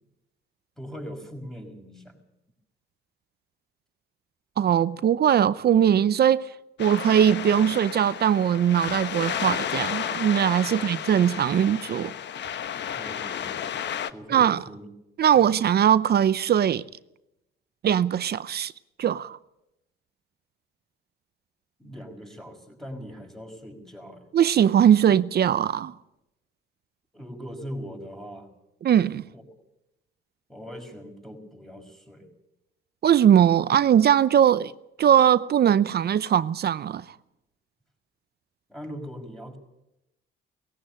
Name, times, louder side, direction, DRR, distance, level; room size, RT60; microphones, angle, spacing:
voice 1, 0.8-2.1 10.7-11.0 12.9-13.6 14.1-14.9 15.3-15.4 21.8-24.3 27.1-28.5 29.3-29.4 30.5-32.3 38.7-39.6, equal, ahead, 5.5 m, -40 dB
voice 2, 4.6-6.5 6.8-12.1 14.3-14.6 15.2-16.8 17.8-18.7 19.0-19.4 24.3-25.9 28.8-29.3 33.0-34.7 35.0-37.0, right 9 dB, 55° right, 0.7 m, -20 dB
sound 1, 6.8-14.1, left 9 dB, 65° left, 1.1 m, -32 dB
18.5 x 16.5 x 8.8 m
cardioid pair, 90°, 20 cm